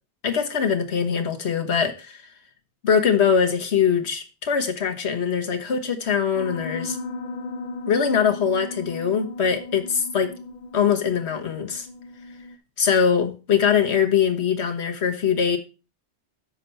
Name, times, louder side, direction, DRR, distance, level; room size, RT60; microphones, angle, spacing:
voice 1, 0.2-2.3 2.8-7.0 7.9-10.3 10.7-11.9 12.8-15.6, left 7 dB, 70° left, 1.3 m, -22 dB
Piano, 6.4-12.6, left 2 dB, 50° left, 0.6 m, -36 dB
7.3 x 5.7 x 5.3 m
omnidirectional pair, 1.2 m